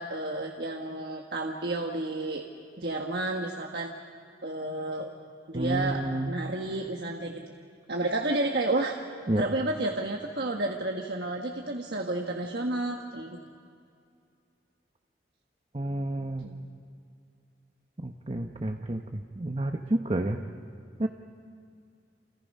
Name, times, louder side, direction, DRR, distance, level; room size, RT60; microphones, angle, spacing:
voice 1, 0.0-2.4 2.8-3.9 4.4-5.1 5.5-6.0 6.3-7.4 7.9-9.0 9.3-13.4 16.4-16.7, right 2 dB, 65° right, 1 dB, 1.5 m, -31 dB
voice 2, 5.5-6.3 9.3-9.4 15.7-16.4 18.0-20.4 21.0-21.1, right 1 dB, 35° right, 5 dB, 0.9 m, -30 dB
29.0 x 29.0 x 5.5 m, 2.4 s
head